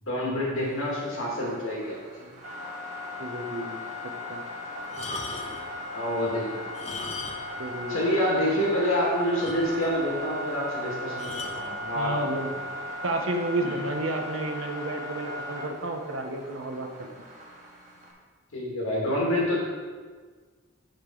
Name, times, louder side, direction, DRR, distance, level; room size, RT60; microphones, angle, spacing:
voice 1, 0.0-2.3 5.9-6.6 7.9-12.1 13.6-13.8 18.5-19.6, equal, 90° left, -4 dB, 2.2 m, -27 dB
sound 1, 0.6-18.1, left 1 dB, 35° right, 1.5 m, -38 dB
voice 2, 3.2-4.4 7.6-8.0 11.9-12.7 13.0-17.1, right 2 dB, 85° right, 4 dB, 0.9 m, -31 dB
sound 2, 4.9-5.7 6.6-7.6 7.9-8.0 8.6-8.7 8.9-9.0 9.4-10.0 11.2-11.6 12.5-12.7, left 3 dB, 30° left, 0.8 m, -38 dB
10.5 x 5.0 x 3.9 m, 1.5 s
head